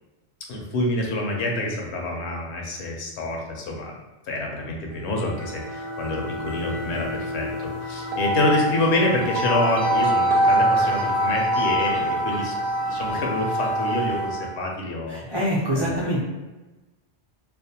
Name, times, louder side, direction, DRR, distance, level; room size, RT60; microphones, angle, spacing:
voice 1, 0.5-3.9 4.3-12.5 12.8-15.2 15.7-16.0, left 1 dB, 75° left, 0 dB, 0.8 m, -27 dB
sound 1, 5.0-14.5, equal, 65° right, 0.7 m, -25 dB
voice 2, 15.1-16.2, equal, 30° right, -7 dB, 0.5 m, -25 dB
2.5 x 2.0 x 2.7 m, 1.1 s
omnidirectional pair, 1.1 m